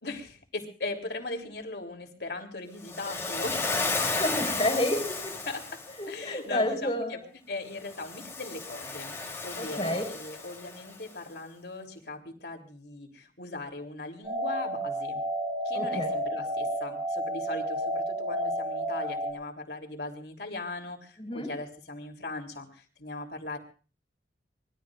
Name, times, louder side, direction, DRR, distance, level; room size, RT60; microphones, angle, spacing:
voice 1, 0.0-3.7 5.5-5.8 6.1-7.2 7.5-9.1 9.4-15.2 15.6-23.6, left 2 dB, 70° left, 4 dB, 3.3 m, -39 dB
Waves surf, 2.8-6.1 7.8-10.9, left 3 dB, 15° left, 3.3 m, -33 dB
voice 2, 4.1-5.3 6.0-7.2 9.6-10.0 15.7-16.1 21.2-21.5, left 1 dB, 30° left, 5 dB, 4.5 m, -30 dB
sound 1, 14.2-19.3, right 1 dB, 30° right, 5.2 m, -31 dB
25.0 x 21.0 x 2.5 m, 0.38 s
head